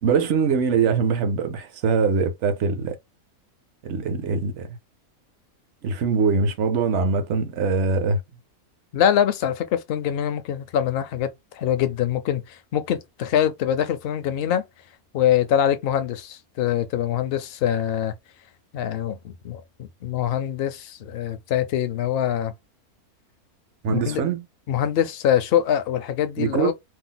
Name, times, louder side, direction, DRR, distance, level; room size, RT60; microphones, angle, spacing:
voice 1, 0.0-3.0 3.8-4.7 5.8-8.2 23.8-24.4 26.4-26.7, right 5 dB, 60° right, 0.8 m, -22 dB
voice 2, 8.9-11.3 11.5-14.6 15.1-18.1 18.7-22.5 23.8-24.2 24.7-26.7, left 10 dB, 60° left, 0.6 m, -24 dB
2.7 x 2.0 x 3.8 m
omnidirectional pair, 1.5 m